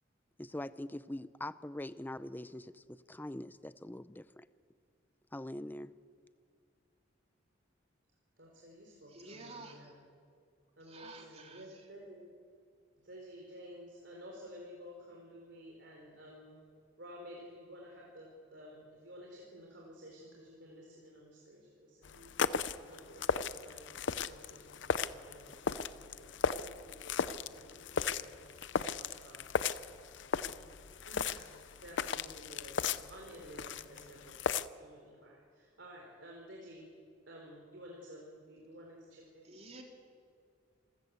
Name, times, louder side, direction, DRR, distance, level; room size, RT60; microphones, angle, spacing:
voice 1, 0.4-4.5 5.3-5.9, left 1 dB, 10° left, 15 dB, 0.5 m, -43 dB
voice 2, 8.4-10.0 10.8-12.3 13.0-16.6 17.0-29.5 31.1-36.9 37.3-39.5, equal, 65° right, -1 dB, 4.0 m, -53 dB
voice 3, 9.1-9.9 10.8-11.9 39.4-39.8, right 3 dB, 35° right, 2 dB, 3.2 m, -51 dB
sound 1, 22.0-34.7, left 5 dB, 70° left, 0.6 m, -36 dB
27.0 x 15.0 x 8.1 m, 2.3 s
head